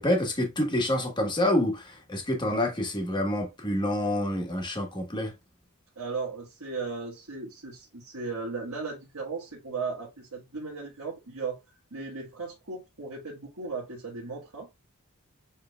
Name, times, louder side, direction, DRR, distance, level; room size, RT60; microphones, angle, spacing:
voice 1, 0.0-5.3, left 1 dB, 20° left, 1.2 m, -27 dB
voice 2, 5.9-11.6 11.9-14.7, right 4 dB, 85° right, 1.5 m, -36 dB
7.1 x 3.3 x 2.2 m
head